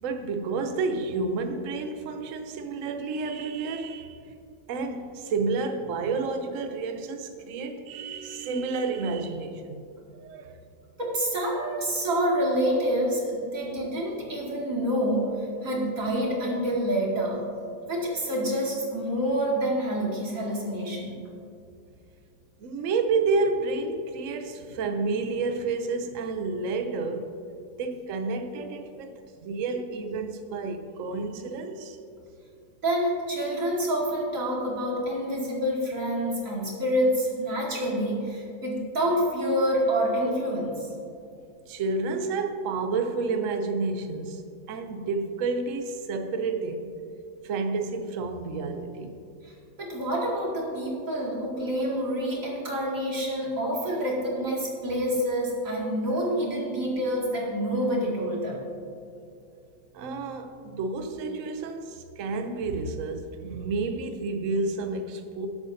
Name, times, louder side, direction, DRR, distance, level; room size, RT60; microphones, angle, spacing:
voice 1, 0.0-4.3 4.7-9.8 10.1-10.6 22.6-27.3 27.8-32.0 41.7-46.9 47.4-49.2 59.9-65.5, right 4 dB, 75° right, 0.7 m, -30 dB
voice 2, 11.0-17.4 17.9-21.1 32.8-40.7 49.4-58.6, equal, 45° right, 2.6 m, -27 dB
18.0 x 8.1 x 2.7 m
omnidirectional pair, 2.1 m